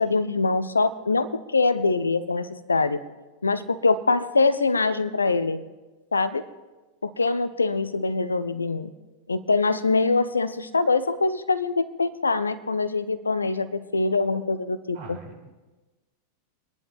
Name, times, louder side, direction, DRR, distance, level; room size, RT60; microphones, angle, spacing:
voice 1, 0.0-3.0 3.4-5.6 6.1-6.4 7.0-8.9 9.3-15.2, left 3 dB, 75° left, 15 dB, 0.8 m, -24 dB
voice 2, 14.9-15.5, right 5 dB, 50° right, -2 dB, 5.2 m, -42 dB
27.0 x 10.5 x 3.6 m, 1.2 s
figure-of-eight pair, 90°, 0 cm